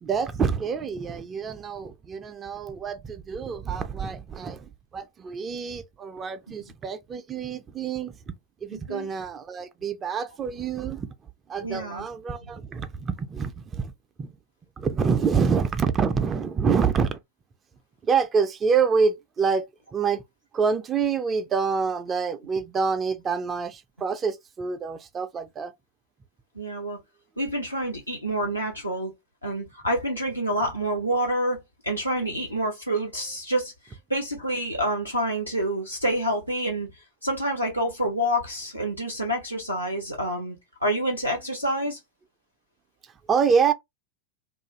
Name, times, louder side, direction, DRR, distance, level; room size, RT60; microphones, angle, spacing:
voice 1, 0.0-8.1 8.6-11.1 11.5-13.9 14.2-14.3 14.8-17.2 18.0-20.2 20.5-25.7 43.3-43.7, right 5 dB, 25° right, 0.3 m, -26 dB
voice 2, 8.7-9.1 11.6-12.1 26.6-27.0 27.4-29.1 29.4-36.9 37.2-40.6 40.8-42.0, right 1 dB, 90° left, 0.6 m, -28 dB
2.4 x 2.3 x 2.9 m
figure-of-eight pair, 90°, 0 cm